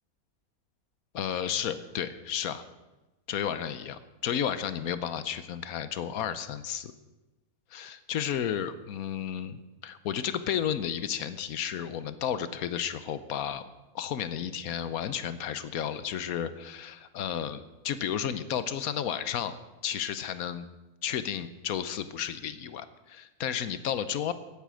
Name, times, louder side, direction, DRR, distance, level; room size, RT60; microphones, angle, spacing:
voice 1, 1.1-2.6 3.3-6.9 7.7-13.6 13.9-19.6 19.8-20.7 21.0-24.3, left 9 dB, 90° left, 13 dB, 1.3 m, -32 dB
17.0 x 9.3 x 6.3 m, 1.1 s
omnidirectional pair, 1.5 m